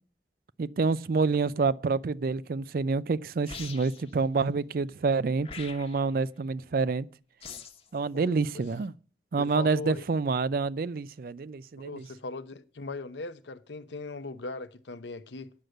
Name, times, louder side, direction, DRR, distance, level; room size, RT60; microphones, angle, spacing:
voice 1, 0.6-7.1 7.9-8.9 9.3-12.1, right 4 dB, 55° right, 0.4 m, -28 dB
sound 1, 3.5-4.1 5.4-6.1 7.4-7.9, left 5 dB, 35° left, 1.1 m, -43 dB
voice 2, 8.1-8.6 9.4-10.0 11.8-15.5, left 3 dB, 85° left, 0.7 m, -39 dB
9.5 x 6.5 x 7.7 m
head